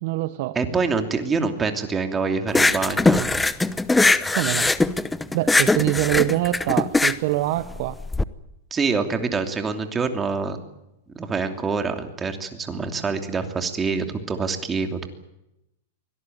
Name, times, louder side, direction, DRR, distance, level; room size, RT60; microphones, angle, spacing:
voice 1, 0.0-0.6 4.3-4.7 5.3-7.9, right 17 dB, 55° right, 13 dB, 1.0 m, -24 dB
voice 2, 0.5-3.3 8.7-10.6 11.1-15.1, right 4 dB, 15° right, 6 dB, 2.9 m, -25 dB
sound 1, 2.5-8.2, left 2 dB, 5° left, 0.9 m, -20 dB
24.5 x 18.0 x 9.3 m, 0.88 s
hypercardioid pair, 140°, 0 cm